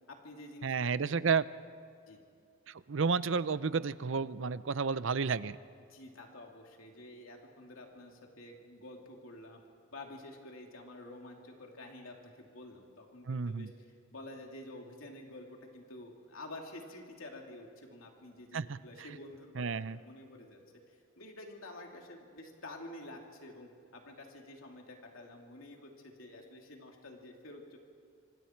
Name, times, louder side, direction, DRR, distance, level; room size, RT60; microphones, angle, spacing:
voice 1, 0.1-1.2 2.1-2.2 5.9-9.6 9.9-13.7 14.1-20.6 20.9-27.8, left 1 dB, 85° left, 1 dB, 3.0 m, -49 dB
voice 2, 0.6-1.4 2.7-5.6 13.3-13.7 18.5-18.8 19.6-20.0, right 5 dB, 65° right, 16 dB, 0.6 m, -31 dB
26.5 x 26.0 x 4.6 m, 2.3 s
head